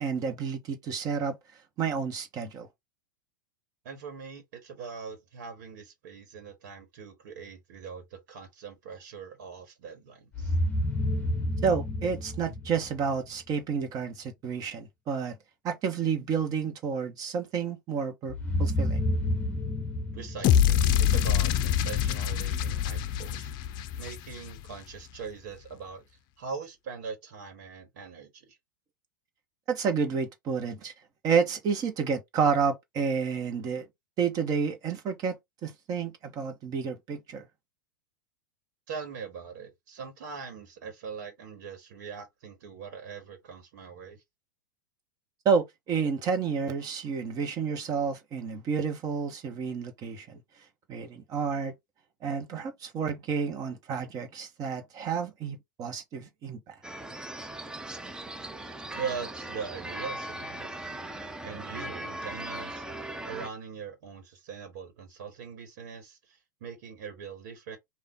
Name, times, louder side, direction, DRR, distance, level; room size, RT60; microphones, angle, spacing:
voice 1, 0.0-1.4 1.8-2.7 11.6-15.4 15.6-19.0 29.7-30.9 31.2-33.9 34.2-35.4 35.6-37.5 45.4-50.4 50.9-51.7 52.2-56.7, right 6 dB, 35° right, 1.4 m, -30 dB
voice 2, 3.8-10.5 20.1-23.5 24.0-26.0 26.4-28.6 38.9-44.2 58.9-60.7 61.4-67.8, right 6 dB, 65° right, 1.5 m, -41 dB
sound 1, 10.3-13.3 18.3-21.5, left 1 dB, 15° left, 1.2 m, -30 dB
sound 2, 20.4-24.7, left 9 dB, 45° left, 0.5 m, -25 dB
sound 3, 56.8-63.5, right 1 dB, 5° right, 0.6 m, -39 dB
3.7 x 2.5 x 3.7 m
hypercardioid pair, 105°, 11 cm